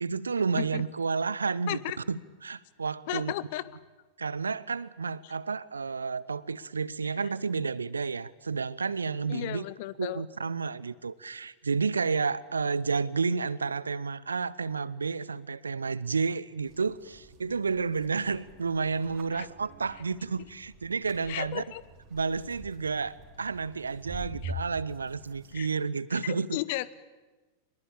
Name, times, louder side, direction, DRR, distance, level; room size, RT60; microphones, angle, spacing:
voice 1, 0.0-1.8 2.1-3.3 4.2-9.6 10.0-21.6 22.1-26.6, right 5 dB, 75° right, 20 dB, 0.7 m, -31 dB
voice 2, 3.1-3.6 9.3-10.2 19.3-19.5 21.3-21.8 24.4-24.5 25.5-25.7 26.2-26.9, left 17 dB, 50° left, 18 dB, 1.0 m, -34 dB
sound 1, 16.6-25.6, right 1 dB, 40° right, 3.7 m, -46 dB
24.0 x 21.5 x 8.8 m, 1.2 s
figure-of-eight pair, 90°, 0 cm